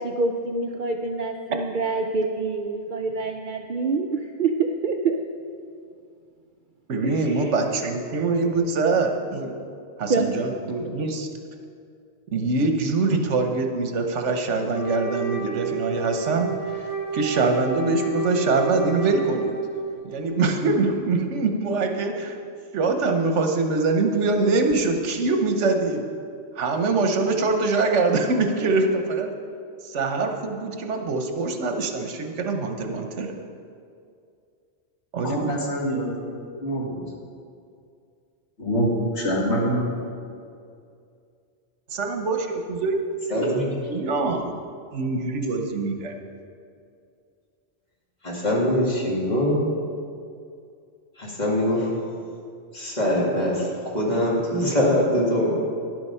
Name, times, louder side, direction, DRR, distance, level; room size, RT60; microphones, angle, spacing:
voice 1, 0.0-5.2 7.0-7.5 10.1-10.3, right 4 dB, 55° right, 4 dB, 0.6 m, -26 dB
voice 2, 6.9-9.6 10.0-11.3 12.3-16.9 17.1-19.5 20.0-22.4 22.7-26.0 26.6-29.3 29.8-33.3 35.1-35.5 41.9-42.9 43.3-44.5 44.9-46.1, right 3 dB, 75° right, 5 dB, 1.2 m, -24 dB
Wind instrument woodwind instrument, 14.7-19.9, right 3 dB, 15° left, 1.3 m, -30 dB
voice 3, 35.2-36.1 36.6-37.0 38.6-39.8, equal, 70° left, -2 dB, 2.1 m, -25 dB
voice 4, 43.3-43.7 48.2-49.6 51.2-51.9 52.7-55.7, left 1 dB, 35° left, -4 dB, 2.1 m, -23 dB
10.5 x 7.9 x 5.5 m, 2.4 s
omnidirectional pair, 1.2 m